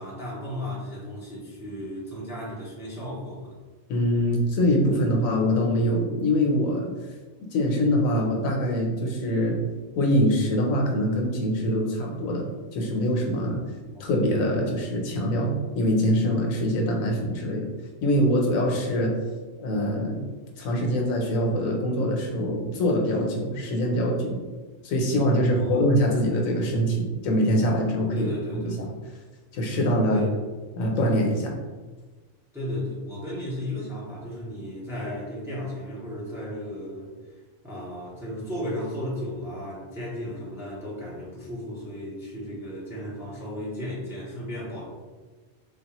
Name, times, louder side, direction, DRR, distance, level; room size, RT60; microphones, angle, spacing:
voice 1, 0.0-3.5 13.9-14.1 25.5-25.9 28.1-29.0 30.1-30.4 32.5-37.1 37.6-44.8, left 1 dB, 5° right, -7 dB, 0.7 m, -34 dB
voice 2, 3.9-6.9 7.5-9.6 10.0-12.4 12.7-13.6 14.0-17.7 18.0-19.1 19.6-20.3 20.6-24.4 24.8-28.3 28.5-28.9 29.5-30.2 30.8-31.6, equal, 85° left, 0 dB, 1.1 m, -24 dB
3.4 x 2.4 x 2.9 m, 1.3 s
omnidirectional pair, 1.4 m